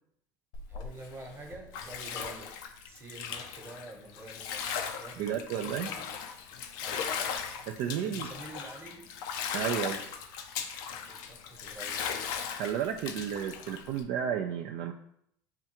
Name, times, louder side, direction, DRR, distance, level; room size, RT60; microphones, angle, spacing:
Bathtub (filling or washing), 0.5-14.0, left 7 dB, 70° left, 0.5 m, -38 dB
voice 1, 0.7-6.2 6.8-7.3 7.8-9.1 11.0-12.2, right 2 dB, 20° right, 2 dB, 1.0 m, -48 dB
voice 2, 5.2-5.9 7.7-8.3 9.5-10.0 12.5-14.9, right 9 dB, 60° right, 3 dB, 0.3 m, -32 dB
5.7 x 2.3 x 2.9 m, 0.72 s
hypercardioid pair, 85°, 11 cm